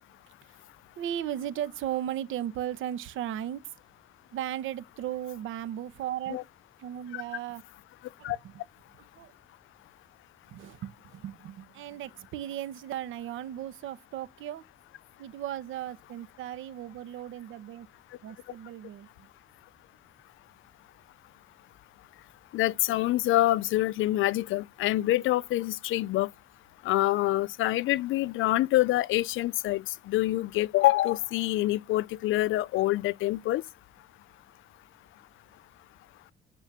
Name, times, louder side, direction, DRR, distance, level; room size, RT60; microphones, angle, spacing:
voice 1, 1.0-3.7 4.3-6.4 6.8-7.6 8.2-8.5 9.2-9.3 10.5-14.6 15.2-17.9 18.2-19.1, right 11 dB, 85° right, 1.1 m, -36 dB
voice 2, 22.5-26.3 26.8-33.6, left 16 dB, 80° left, 0.5 m, -26 dB
9.1 x 4.4 x 7.3 m
cardioid pair, 90°, 20 cm